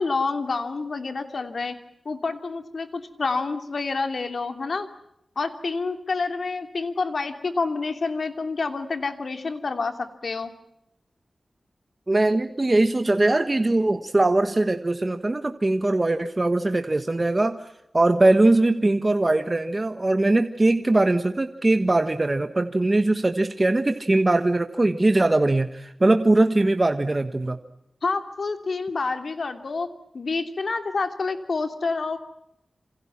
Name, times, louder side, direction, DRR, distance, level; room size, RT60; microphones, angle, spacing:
voice 1, 0.0-1.8 2.0-4.9 5.4-10.5 28.0-29.9 30.1-32.2, left 4 dB, 60° left, 7 dB, 2.9 m, -28 dB
voice 2, 12.1-17.7 17.9-27.6, right 2 dB, 25° right, 8 dB, 1.4 m, -21 dB
28.0 x 27.5 x 6.0 m, 0.78 s
wide cardioid pair, 115°, 0 cm